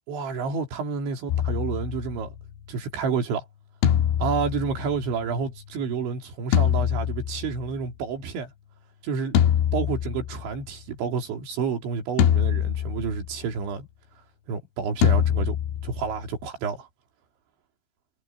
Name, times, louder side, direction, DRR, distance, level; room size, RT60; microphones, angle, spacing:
voice 1, 0.1-2.4 2.7-3.5 4.2-8.5 9.0-9.4 9.7-13.9 14.5-15.6 15.8-16.9, right 5 dB, 65° right, 5.6 m, -29 dB
sound 1, 1.3-2.6 3.8-5.5 6.5-7.9 9.3-10.7 12.2-13.4 15.0-16.4, left 10 dB, 75° left, 3.9 m, -24 dB
omnidirectional pair, 5.8 m